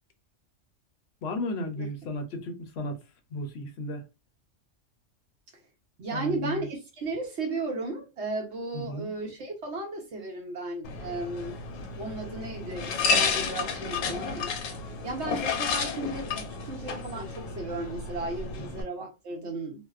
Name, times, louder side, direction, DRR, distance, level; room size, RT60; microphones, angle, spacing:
voice 1, 1.2-3.0 3.3-4.0 6.1-6.7 8.7-9.1 18.5-18.8, left 1 dB, 60° left, 0.8 m, -34 dB
voice 2, 6.0-11.6 12.0-14.5 15.0-19.8, right 2 dB, 65° right, 1.1 m, -35 dB
sound 1, 10.8-18.8, left 5 dB, 90° left, 1.0 m, -31 dB
2.8 x 2.0 x 2.3 m
omnidirectional pair, 1.3 m